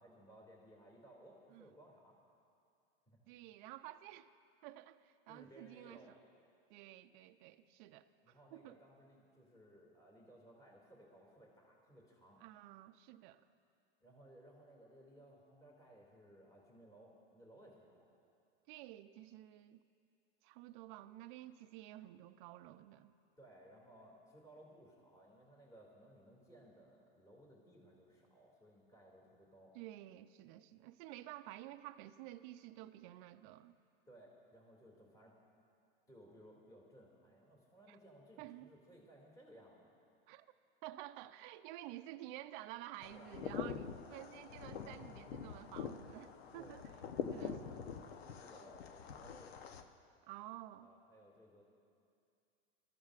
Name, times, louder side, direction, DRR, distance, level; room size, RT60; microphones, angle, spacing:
voice 1, 0.0-2.2 3.1-3.2 5.3-6.1 8.2-12.4 14.0-18.1 23.4-29.7 34.1-35.4 36.1-39.9 43.1-43.3 46.6-49.5 50.8-51.6, right 1 dB, 10° left, -2 dB, 2.4 m, -61 dB
voice 2, 3.3-4.3 4.6-6.2 6.7-8.8 12.4-13.5 18.7-19.8 20.4-23.1 29.7-33.8 37.9-38.0 38.4-38.7 40.3-40.5 40.8-46.8 47.3-47.6 50.2-50.9, right 15 dB, 55° right, 8 dB, 0.5 m, -52 dB
sound 1, 43.0-49.8, left 7 dB, 85° left, 0.9 m, -45 dB
23.5 x 14.0 x 2.5 m, 2.4 s
hypercardioid pair, 120°, 30 cm